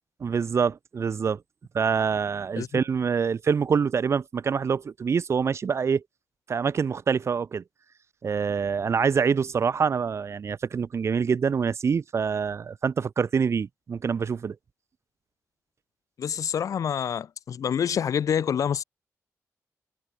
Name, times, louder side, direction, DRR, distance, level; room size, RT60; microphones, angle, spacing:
voice 1, 0.2-1.4 1.7-6.0 6.5-7.6 8.2-14.6, right 6 dB, 50° right, 0.6 m, -25 dB
voice 2, 16.2-18.8, left 8 dB, 70° left, 0.8 m, -27 dB
cardioid pair, 80°, 6 cm